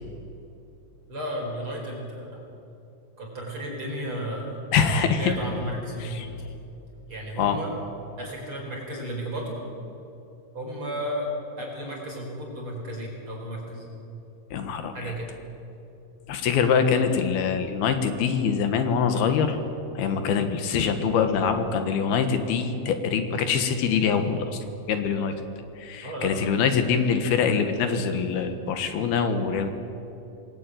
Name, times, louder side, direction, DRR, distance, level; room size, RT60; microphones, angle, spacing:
voice 1, 1.1-2.4 3.2-4.5 4.9-6.3 7.1-7.7 8.2-9.6 10.5-13.8 14.9-15.3 26.0-26.5, equal, 35° right, -2 dB, 5.4 m, -33 dB
voice 2, 4.7-5.3 6.0-6.3 7.4-7.6 14.5-15.1 16.3-19.6 20.0-24.6 24.9-25.3 25.8-29.7, left 6 dB, 85° left, 7 dB, 3.6 m, -24 dB
27.5 x 19.5 x 9.3 m, 2.8 s
omnidirectional pair, 4.3 m